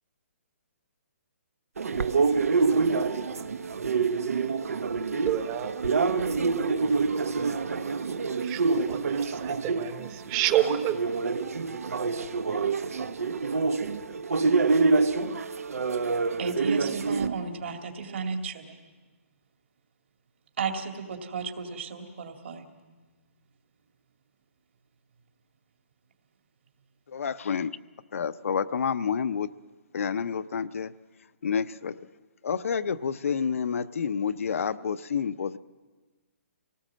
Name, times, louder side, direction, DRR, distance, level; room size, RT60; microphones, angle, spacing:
sound 1, 1.8-17.3, right 4 dB, 85° right, 1.0 m, -26 dB
voice 1, 5.3-5.7 8.5-8.6 8.9-10.9, right 13 dB, 20° right, 10 dB, 1.0 m, -28 dB
voice 2, 16.4-18.8 20.6-22.6, right 5 dB, 55° right, 4 dB, 2.3 m, -34 dB
voice 3, 27.1-27.7 28.1-29.5 29.9-30.9 31.4-31.9 32.4-35.6, left 6 dB, 70° left, 12 dB, 0.7 m, -29 dB
26.0 x 18.5 x 7.5 m, 1.3 s
hypercardioid pair, 165°, 8 cm